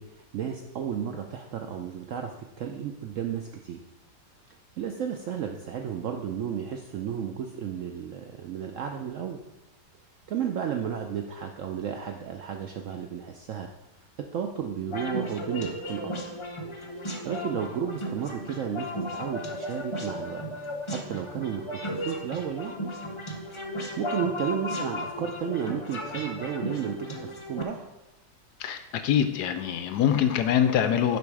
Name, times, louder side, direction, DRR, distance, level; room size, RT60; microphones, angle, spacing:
voice 1, 0.0-3.8 4.8-9.4 10.3-13.7 14.3-16.3 17.0-20.4 20.9-22.7 23.4-27.9, right 8 dB, 75° right, 4 dB, 0.7 m, -33 dB
sound 1, 14.9-27.6, equal, 35° left, 0.5 m, -35 dB
voice 2, 28.6-31.2, left 9 dB, 75° left, 9 dB, 1.1 m, -24 dB
6.9 x 5.1 x 4.8 m, 0.99 s
omnidirectional pair, 1.9 m